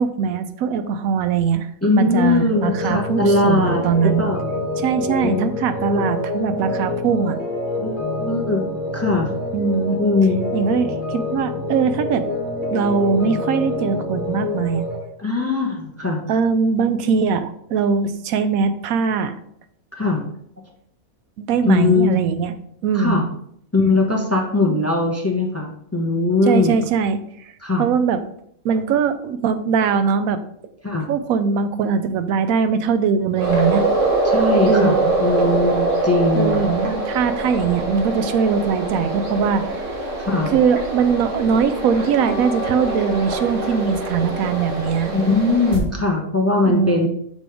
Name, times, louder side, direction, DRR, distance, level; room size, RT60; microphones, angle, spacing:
voice 1, 0.0-4.3 4.8-7.4 9.5-10.0 10.5-12.2 12.7-14.9 16.3-19.3 21.4-22.5 22.8-23.2 24.7-24.8 26.5-27.5 27.8-28.2 28.6-30.4 31.1-33.8 34.7-35.1 36.3-39.8 40.5-45.1 46.6-47.1, right 6 dB, 90° right, 10 dB, 1.0 m, -21 dB
voice 2, 1.8-3.8 4.2-4.5 5.0-5.5 5.9-6.1 7.8-8.7 8.9-9.3 10.0-10.5 15.2-16.2 19.9-20.3 21.6-22.2 22.9-23.2 23.7-26.7 27.6-27.9 30.8-31.1 34.2-36.6 40.2-40.5 45.1-47.1, left 3 dB, 15° left, 0 dB, 0.7 m, -20 dB
sound 1, 2.5-15.0, left 2 dB, 35° left, 1.4 m, -27 dB
sound 2, 33.3-45.8, right 2 dB, 60° right, 1.8 m, -23 dB
6.9 x 4.4 x 3.5 m, 0.70 s
omnidirectional pair, 1.5 m